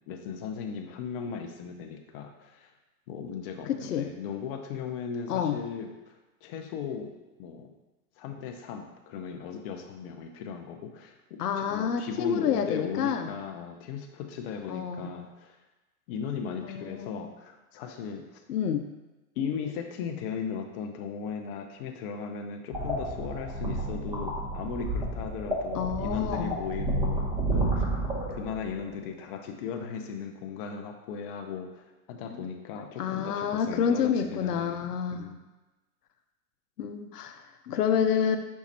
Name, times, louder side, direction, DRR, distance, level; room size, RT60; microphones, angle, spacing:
voice 1, 0.1-2.7 3.1-6.1 6.4-7.1 7.4-7.7 8.2-15.6 16.1-18.4 19.4-27.8 28.3-35.4, left 6 dB, 40° left, 4 dB, 0.5 m, -37 dB
voice 2, 3.7-4.1 5.3-5.6 11.4-13.3 14.7-15.1 16.6-17.3 18.5-18.9 25.7-26.6 32.3-32.4 33.0-35.3 36.8-38.4, left 8 dB, 90° left, 7 dB, 0.6 m, -28 dB
sound 1, 22.7-28.8, right 2 dB, 10° right, 0.9 m, -30 dB
5.2 x 2.4 x 4.1 m, 1.1 s
hypercardioid pair, 115°, 45 cm